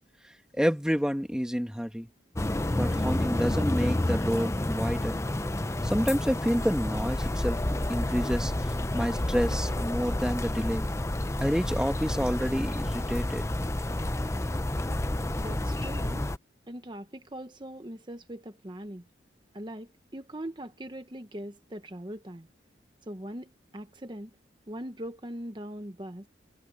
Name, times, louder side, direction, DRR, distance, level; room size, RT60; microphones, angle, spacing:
voice 1, 0.5-2.1 2.8-5.2 5.8-10.9 11.4-13.4, equal, 5° right, 1.7 m, -29 dB
sound 1, 2.3-16.4, left 1 dB, 15° left, 0.6 m, -29 dB
voice 2, 15.4-16.3 16.7-19.0 19.5-22.5 23.1-24.3 24.7-26.3, right 1 dB, 25° right, 1.0 m, -41 dB
head